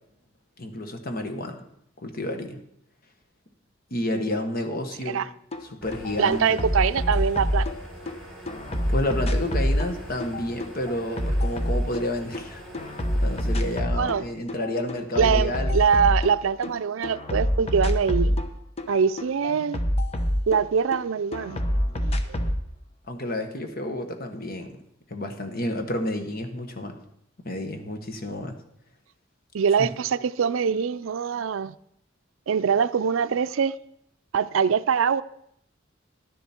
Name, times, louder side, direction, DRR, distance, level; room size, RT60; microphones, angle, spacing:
voice 1, 0.6-1.6 2.0-2.6 3.9-5.2 5.6-6.6 8.9-12.9 13.2-15.8 23.1-24.8 25.1-27.0 27.4-28.6 29.8-29.9, left 1 dB, 50° left, 1.4 m, -30 dB
sound 1, 5.5-5.6 5.9-8.1 8.5-12.4 12.7-14.2 14.5-16.7 17.0-21.0 21.3-22.6, equal, 30° left, 0.9 m, -26 dB
Phantom Quadcopter Hovers, 5.8-13.8, right 1 dB, 5° left, 4.1 m, -43 dB
voice 2, 6.2-7.7 13.9-14.3 15.2-18.4 18.9-19.8 20.5-21.6 22.0-22.1 29.5-31.7 32.5-33.8 34.3-35.2, right 6 dB, 85° right, 0.4 m, -23 dB
11.5 x 10.5 x 4.4 m
head